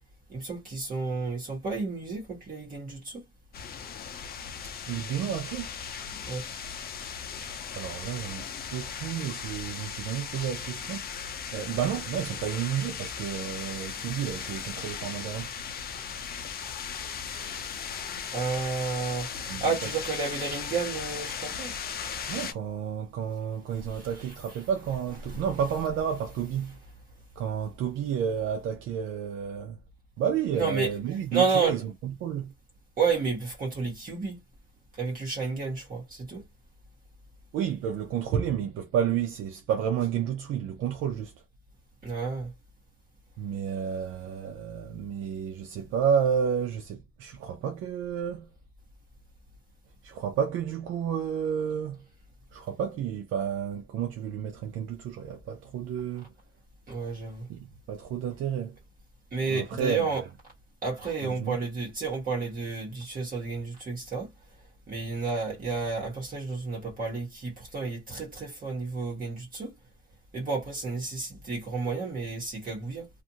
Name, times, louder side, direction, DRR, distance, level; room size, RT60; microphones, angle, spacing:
voice 1, 0.3-3.2 6.3-6.5 18.3-21.7 23.9-24.1 25.2-25.4 30.5-30.9 31.3-31.8 33.0-34.4 35.0-36.4 42.0-42.5 56.9-57.5 59.3-60.2 60.8-64.3 64.9-69.8 70.3-73.1, right 4 dB, 45° right, 1.3 m, -31 dB
sound 1, 3.5-22.5, left 7 dB, 50° left, 0.5 m, -37 dB
voice 2, 4.9-5.8 7.7-15.5 19.5-19.6 22.3-26.8 27.4-29.8 30.2-32.5 37.5-41.4 43.4-48.5 50.0-52.1 52.5-56.3 57.5-58.8 59.3-60.1 61.2-61.6, right 8 dB, 85° right, 0.5 m, -31 dB
2.5 x 2.5 x 2.7 m
cardioid pair, 90°, 20 cm